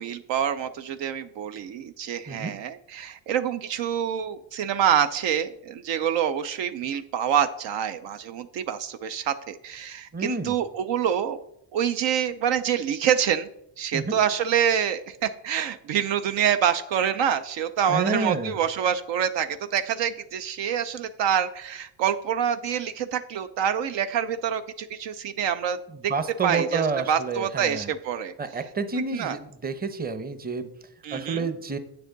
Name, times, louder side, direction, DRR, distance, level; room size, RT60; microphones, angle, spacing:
voice 1, 0.0-11.4 11.7-13.5 13.8-25.8 26.0-26.1 26.4-28.3 29.0-29.4 31.0-31.5, right 9 dB, 65° right, 10 dB, 0.6 m, -26 dB
voice 2, 10.1-10.5 13.9-14.2 17.9-18.5 26.1-27.9 28.4-30.7 31.1-31.8, right 4 dB, 20° right, 10 dB, 0.8 m, -29 dB
8.4 x 6.9 x 3.9 m, 0.75 s
supercardioid pair, 80°, 47 cm